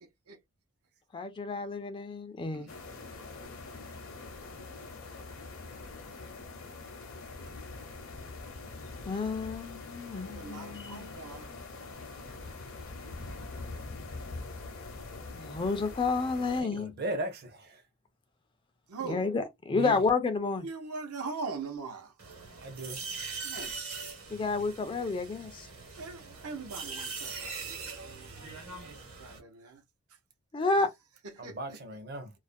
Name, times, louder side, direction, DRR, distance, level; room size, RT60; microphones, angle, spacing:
voice 1, 1.1-2.7 9.1-11.1 15.3-16.9 19.0-20.7 24.3-25.7 30.5-30.9, left 4 dB, 20° left, 0.3 m, -30 dB
sound 1, 2.7-16.6, left 3 dB, 60° left, 0.6 m, -44 dB
voice 2, 10.2-11.5 18.9-19.3 20.6-22.1 23.4-23.7 26.0-28.9 29.2-29.8 31.4-31.6, right 4 dB, 80° right, 0.8 m, -41 dB
voice 3, 16.6-17.8 19.7-20.0 22.6-23.0 31.4-32.3, right 1 dB, 45° right, 0.6 m, -37 dB
sound 2, 22.2-29.4, right 4 dB, 65° right, 1.1 m, -41 dB
2.4 x 2.1 x 2.5 m
head